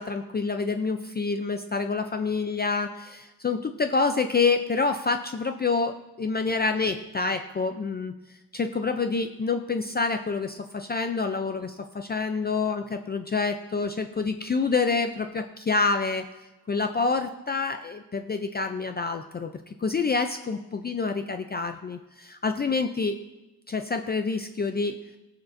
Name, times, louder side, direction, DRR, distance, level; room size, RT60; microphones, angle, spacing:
voice 1, 0.0-8.1 8.5-16.2 16.7-19.5 19.8-23.2 23.7-25.0, left 4 dB, 25° left, 6 dB, 0.4 m, -27 dB
21.0 x 7.1 x 2.6 m, 1.0 s
wide cardioid pair, 175°, 38 cm